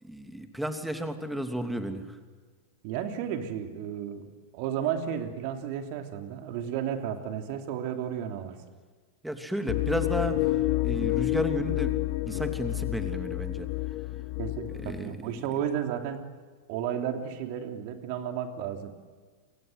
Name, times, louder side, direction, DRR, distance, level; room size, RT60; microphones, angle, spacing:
voice 1, 0.0-2.2 9.2-10.6 10.8-11.9 12.2-13.7 14.7-15.5, right 1 dB, 5° right, 6 dB, 2.9 m, -33 dB
voice 2, 2.8-8.6 14.4-16.3 16.7-18.9, right 9 dB, 45° right, 5 dB, 3.1 m, -33 dB
sound 1, 9.7-15.0, left 18 dB, 45° left, 0.8 m, -29 dB
29.5 x 25.0 x 7.9 m, 1.5 s
figure-of-eight pair, 90°, 0 cm